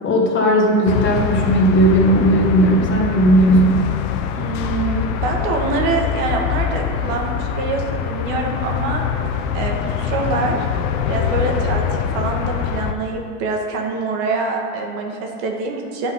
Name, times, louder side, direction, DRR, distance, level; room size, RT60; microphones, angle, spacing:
voice 1, 0.0-3.8, right 1 dB, 30° left, 0 dB, 1.4 m, -16 dB
sound 1, 0.9-12.9, left 8 dB, 65° left, 0.7 m, -23 dB
voice 2, 4.3-9.0 9.5-10.6 11.1-11.8 12.1-16.1, right 3 dB, 60° right, 1 dB, 1.4 m, -24 dB
9.9 x 3.9 x 5.5 m, 2.4 s
supercardioid pair, 115°, 40 cm